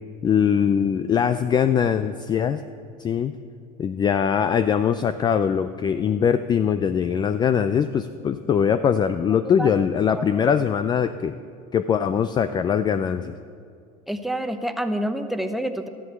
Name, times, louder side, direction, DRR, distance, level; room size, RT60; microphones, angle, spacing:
voice 1, 0.2-2.6 3.0-3.3 3.8-11.4 11.7-13.3, left 7 dB, 25° left, 12 dB, 0.4 m, -22 dB
voice 2, 9.3-9.7 10.1-10.3 14.1-15.9, right 1 dB, ahead, 7 dB, 0.9 m, -28 dB
13.0 x 11.0 x 8.1 m, 2.3 s
supercardioid pair, 130°, 19 cm